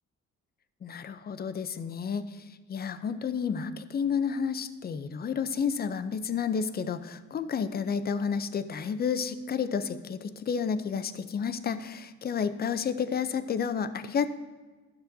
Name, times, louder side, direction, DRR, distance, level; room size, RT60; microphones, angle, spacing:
voice 1, 0.8-14.3, left 6 dB, 30° left, 12 dB, 0.5 m, -31 dB
12.0 x 6.7 x 2.7 m, 1.3 s
cardioid pair, 90°, 30 cm